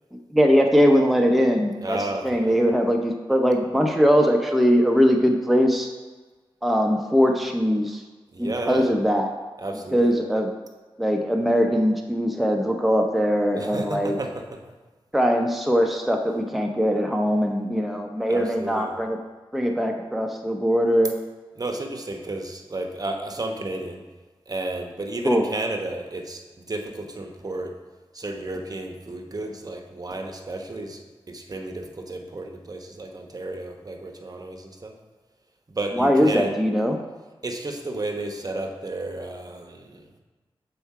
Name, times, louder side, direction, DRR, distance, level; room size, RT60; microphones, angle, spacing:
voice 1, 0.3-2.0 2.2-5.9 6.6-8.0 8.4-9.3 9.9-10.5 11.0-14.1 15.1-19.2 19.5-21.1 25.2-25.4 35.9-37.0, equal, ahead, 3 dB, 0.6 m, -21 dB
voice 2, 1.8-2.6 8.3-8.9 9.6-10.1 13.6-14.6 18.3-19.0 21.6-24.0 24.5-26.4 26.7-27.7 28.1-31.0 31.3-34.9 35.7-36.5 37.4-40.1, right 2 dB, 40° right, 3 dB, 0.9 m, -32 dB
6.9 x 4.5 x 4.7 m, 1.3 s
cardioid pair, 50°, 10 cm